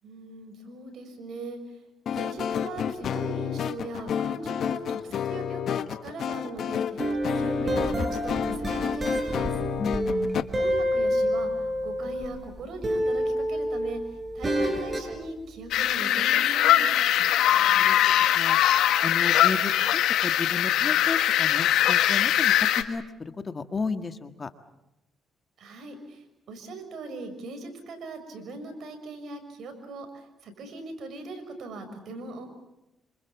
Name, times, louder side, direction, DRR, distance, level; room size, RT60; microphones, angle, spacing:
voice 1, 0.0-1.6 2.1-9.6 10.6-11.5 11.8-14.0 14.3-17.0 25.6-32.5, right 2 dB, 65° right, 6 dB, 6.2 m, -40 dB
sound 1, 2.1-10.4, left 8 dB, 65° left, 1.3 m, -30 dB
sound 2, 7.0-12.5 12.8-15.1, equal, 25° right, 5.6 m, -28 dB
voice 2, 9.8-10.5 17.2-17.3 17.7-18.0 18.3-18.6 19.0-19.7 20.2-24.5, left 4 dB, 30° left, 9 dB, 1.7 m, -33 dB
sound 3, 15.7-22.8, left 12 dB, 85° left, 1.5 m, -22 dB
27.0 x 26.5 x 7.3 m, 0.88 s
cardioid pair, 90°, 0 cm